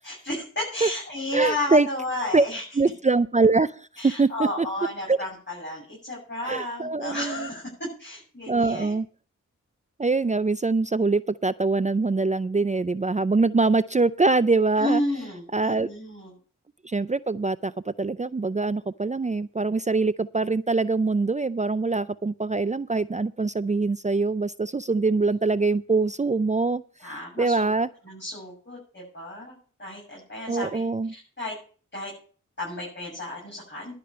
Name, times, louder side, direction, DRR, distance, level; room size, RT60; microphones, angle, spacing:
voice 1, 0.0-2.6 4.0-7.7 8.0-8.9 14.8-16.3 27.0-27.7 28.0-30.8 31.1-31.6 31.9-32.1 32.6-33.9, left 1 dB, 35° left, -5 dB, 7.7 m, -32 dB
voice 2, 1.3-1.9 2.3-2.5 2.8-3.9 4.2-4.3 4.6-4.7 5.1-5.2 6.5-7.5 8.5-9.1 10.0-15.0 15.5-15.9 16.8-26.8 27.4-27.9 30.5-31.1, right 3 dB, 25° right, 16 dB, 0.5 m, -23 dB
12.0 x 5.2 x 8.6 m, 0.40 s
cardioid pair, 45°, 32 cm